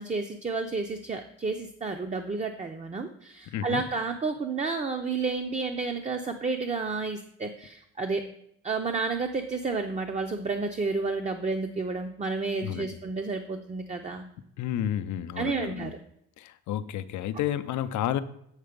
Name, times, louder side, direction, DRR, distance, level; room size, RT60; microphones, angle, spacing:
voice 1, 0.0-8.2 8.6-14.2 15.4-16.0, right 4 dB, 25° right, 5 dB, 0.6 m, -31 dB
voice 2, 3.5-3.8 12.6-12.9 14.6-15.9 16.4-18.2, left 11 dB, 70° left, 11 dB, 0.5 m, -31 dB
8.1 x 3.8 x 5.1 m, 0.72 s
cardioid pair, 90°, 30 cm